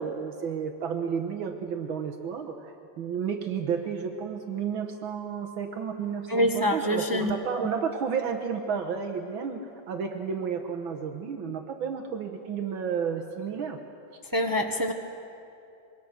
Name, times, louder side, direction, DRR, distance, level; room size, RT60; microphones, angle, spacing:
voice 1, 0.0-9.6 9.9-13.8, right 6 dB, 70° right, 5 dB, 1.8 m, -32 dB
voice 2, 6.3-7.3 14.3-14.9, equal, 25° right, 5 dB, 0.4 m, -25 dB
25.5 x 23.0 x 6.4 m, 2.7 s
omnidirectional pair, 2.4 m